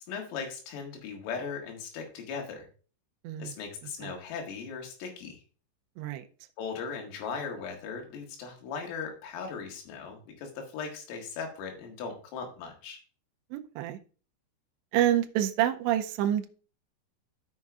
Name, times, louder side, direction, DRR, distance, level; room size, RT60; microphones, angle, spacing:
voice 1, 0.1-2.7 3.4-5.4 6.6-13.0, left 5 dB, 85° left, 4.4 m, -38 dB
voice 2, 6.0-6.3 13.5-14.0 14.9-16.5, right 12 dB, 85° right, 2.5 m, -27 dB
12.5 x 6.4 x 2.4 m
omnidirectional pair, 5.8 m